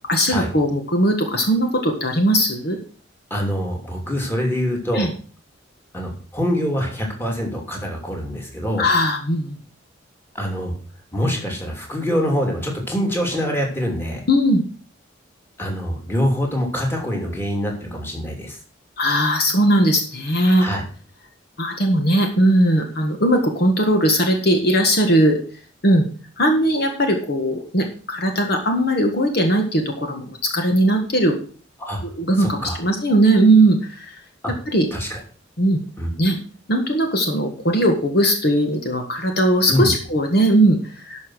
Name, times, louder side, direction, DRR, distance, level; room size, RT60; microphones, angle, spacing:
voice 1, 0.1-2.8 4.9-5.1 8.8-9.6 14.3-14.6 19.0-20.7 21.6-25.4 25.8-26.1 26.4-31.3 32.0-34.1 34.7-34.8 35.6-35.8 36.2-36.4 36.7-41.2, right 1 dB, 55° left, 4 dB, 1.7 m, -19 dB
voice 2, 3.3-5.1 5.9-8.9 10.3-10.7 11.1-14.2 15.6-18.6 20.6-20.8 31.8-32.0 32.4-32.8 34.4-34.5 34.9-35.2 36.0-36.1 39.7-39.9, equal, 10° left, 0 dB, 2.8 m, -24 dB
12.0 x 5.7 x 6.3 m, 0.40 s
head